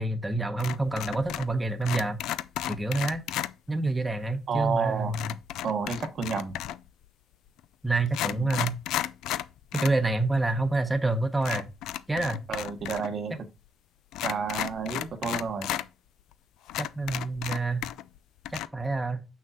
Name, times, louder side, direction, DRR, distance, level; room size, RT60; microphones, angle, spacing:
voice 1, 0.0-2.2 2.7-3.2 3.7-5.3 7.8-8.8 9.7-11.7 12.1-12.4 16.8-17.8 18.5-19.3, right 2 dB, 15° right, 0.9 m, -27 dB
sound 1, 0.6-1.6 1.8-3.5 5.1-6.9 7.6-7.7 8.1-10.0 10.3-10.4 11.4-13.1 13.3-13.4 14.1-15.9 16.3-16.4 16.7-18.2 18.4-18.7, left 13 dB, 90° left, 0.3 m, -33 dB
voice 2, 4.5-5.2 5.6-6.6 8.3-8.6 12.5-13.3 14.2-15.7, right 5 dB, 55° right, 1.0 m, -30 dB
6.4 x 6.0 x 2.8 m
cardioid pair, 90°, 0 cm